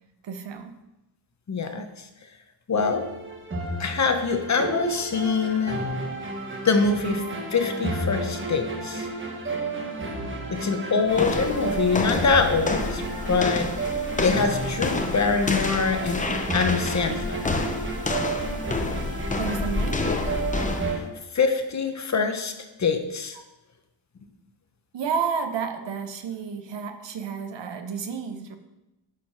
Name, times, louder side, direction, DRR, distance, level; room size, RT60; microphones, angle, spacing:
voice 1, 0.2-0.7 19.4-20.0 24.9-28.6, right 6 dB, 70° right, 8 dB, 1.0 m, -31 dB
voice 2, 1.5-1.8 2.7-3.0 3.8-5.8 6.6-7.2 7.5-9.1 10.5-13.7 14.2-16.3 16.5-17.4 20.9-21.0 21.3-22.5 22.8-23.4, left 4 dB, 40° left, 6 dB, 1.0 m, -24 dB
sound 1, 2.8-21.0, right 2 dB, 25° right, 1.5 m, -32 dB
sound 2, 11.1-21.0, left 3 dB, 15° left, 0.7 m, -29 dB
9.9 x 5.0 x 5.8 m, 0.95 s
wide cardioid pair, 150°, 45 cm